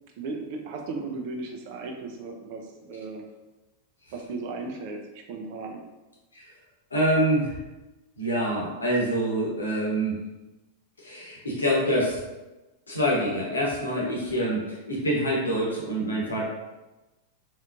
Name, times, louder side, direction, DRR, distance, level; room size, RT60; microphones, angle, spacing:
voice 1, 0.2-3.2 4.1-5.8, right 3 dB, 50° right, 3 dB, 0.6 m, -36 dB
voice 2, 6.9-7.5 8.2-10.2 11.0-12.2 12.9-16.4, equal, 75° left, -3 dB, 1.1 m, -26 dB
4.1 x 3.1 x 2.5 m, 1.1 s
figure-of-eight pair, 90°, 0 cm